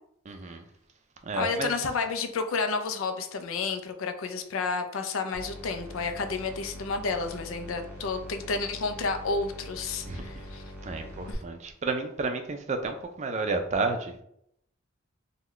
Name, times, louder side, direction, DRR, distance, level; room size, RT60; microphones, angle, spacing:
voice 1, 0.3-0.6 1.2-1.7 10.0-10.3 10.8-14.2, right 3 dB, 35° right, 6 dB, 0.4 m, -31 dB
voice 2, 1.3-10.6 11.3-11.4, left 4 dB, 85° left, 7 dB, 0.5 m, -31 dB
sound 1, 5.3-11.3, equal, 10° right, 0.8 m, -43 dB
3.7 x 2.2 x 3.1 m, 0.73 s
head